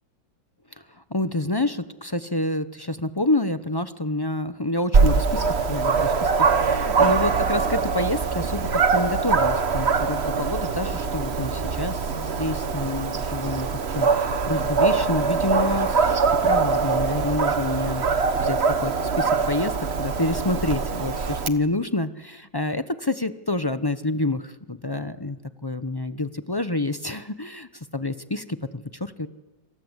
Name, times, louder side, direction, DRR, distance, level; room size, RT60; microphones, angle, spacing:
voice 1, 0.8-19.7 20.0-29.3, left 2 dB, 30° left, 11 dB, 0.4 m, -28 dB
Dog, 4.9-21.5, right 5 dB, 40° right, 1.3 m, -23 dB
27.5 x 26.5 x 8.1 m, 1.1 s
omnidirectional pair, 2.0 m